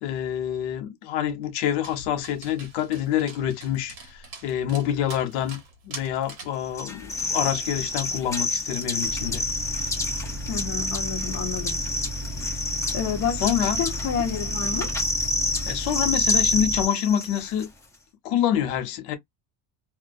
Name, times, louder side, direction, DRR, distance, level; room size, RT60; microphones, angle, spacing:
voice 1, 0.0-9.4 13.4-13.8 15.7-17.7 18.2-19.2, left 10 dB, 85° left, 0.9 m, -27 dB
Dog, 1.8-6.6, right 4 dB, 40° right, 1.1 m, -44 dB
sound 1, 6.7-17.6, left 2 dB, 5° left, 1.0 m, -28 dB
sound 2, 9.1-16.9, equal, 20° right, 0.6 m, -35 dB
voice 2, 10.5-11.7 12.9-15.0, left 7 dB, 35° left, 0.7 m, -29 dB
2.3 x 2.2 x 2.5 m
cardioid pair, 175°, 49 cm